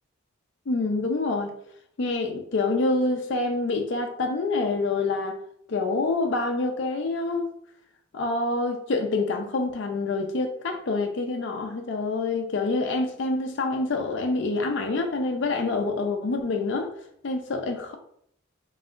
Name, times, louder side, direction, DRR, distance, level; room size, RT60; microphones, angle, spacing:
voice 1, 0.7-1.5 2.0-5.4 5.7-7.5 8.1-16.9 17.2-17.9, left 3 dB, 55° left, 0.4 m, -26 dB
3.9 x 3.7 x 2.5 m
head